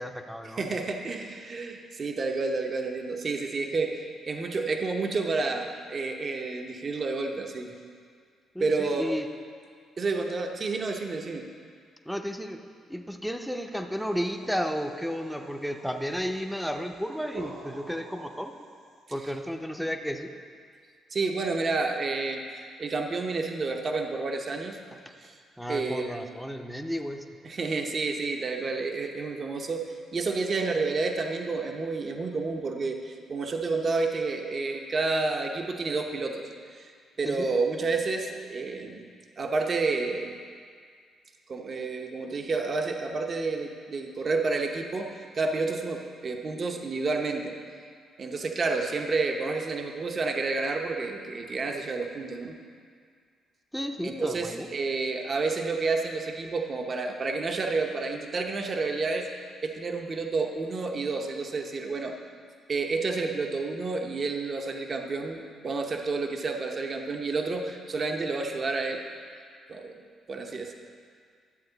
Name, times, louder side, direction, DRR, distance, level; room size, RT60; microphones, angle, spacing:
voice 1, 0.0-0.7 8.5-9.3 12.1-12.6 12.9-18.5 19.1-20.3 25.6-27.2 37.2-37.5 53.7-54.7, equal, ahead, 5 dB, 0.6 m, -33 dB
voice 2, 0.6-7.7 8.6-9.1 10.0-11.5 21.1-24.8 25.2-25.3 25.7-26.1 27.4-36.4 36.7-36.9 37.2-39.0 39.4-40.4 41.5-47.5 48.2-52.5 54.0-59.3 59.6-62.1 62.7-69.0 69.7-69.9 70.3-70.7, right 3 dB, 45° right, 3 dB, 0.8 m, -30 dB
sound 1, 14.0-19.0, right 3 dB, 90° right, 1.8 m, -48 dB
11.0 x 7.6 x 3.9 m, 2.1 s
cardioid pair, 90°, 0 cm